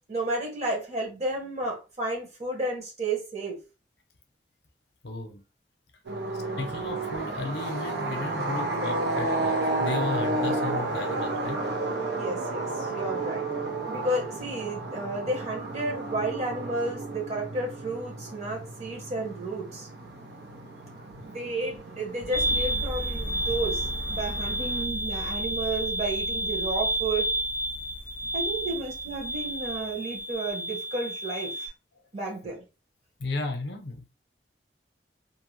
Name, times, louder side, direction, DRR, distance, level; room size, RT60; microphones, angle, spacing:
voice 1, 0.1-3.6 6.1-6.6 12.2-13.5 13.9-19.9 21.2-27.3 28.3-31.7 32.1-32.6, right 2 dB, 40° right, 1.1 m, -32 dB
voice 2, 5.0-5.4 6.6-11.6 33.2-34.1, left 2 dB, 70° left, 0.6 m, -34 dB
sound 1, 6.1-24.8, right 2 dB, 80° right, 0.7 m, -32 dB
sound 2, 22.3-31.7, right 1 dB, 10° left, 0.3 m, -30 dB
2.7 x 2.1 x 3.1 m
head